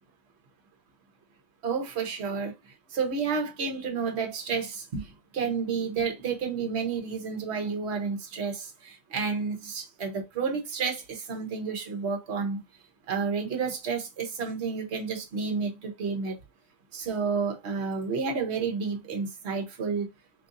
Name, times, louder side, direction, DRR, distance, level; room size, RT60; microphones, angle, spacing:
voice 1, 1.6-2.5 2.9-5.0 5.3-12.6 13.1-16.4 16.9-20.1, right 5 dB, 45° right, 1.0 m, -30 dB
3.0 x 2.6 x 3.7 m
omnidirectional pair, 1.9 m